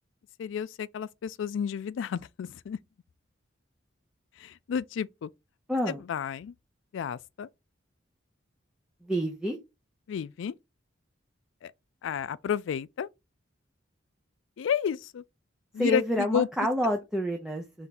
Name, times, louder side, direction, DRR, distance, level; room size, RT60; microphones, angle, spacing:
voice 1, 0.4-2.8 4.4-5.3 6.1-6.5 6.9-7.5 10.1-10.5 11.6-11.7 12.0-13.1 14.6-15.2 15.7-16.5, left 7 dB, 75° left, 0.3 m, -31 dB
voice 2, 5.7-6.0 9.0-9.6 15.8-17.9, equal, 5° right, 0.6 m, -28 dB
3.6 x 3.4 x 4.0 m
head